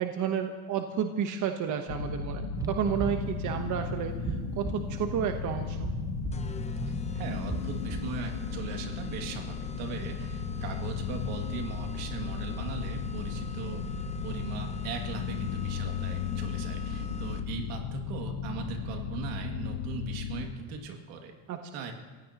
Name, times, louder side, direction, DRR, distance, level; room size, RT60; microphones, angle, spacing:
voice 1, 0.0-4.1 4.5-5.9 21.5-21.6, right 8 dB, 45° right, 5 dB, 1.2 m, -31 dB
sound 1, 1.9-20.5, left 7 dB, 80° left, 2.0 m, -35 dB
sound 2, 2.6-8.2, right 4 dB, 10° right, 0.4 m, -37 dB
sound 3, 6.3-17.7, left 3 dB, 15° left, 0.8 m, -42 dB
voice 2, 6.9-13.8 14.2-21.3 21.7-21.9, right 5 dB, 80° right, 3 dB, 2.5 m, -39 dB
27.5 x 16.0 x 3.0 m, 1.4 s
supercardioid pair, 120°, 41 cm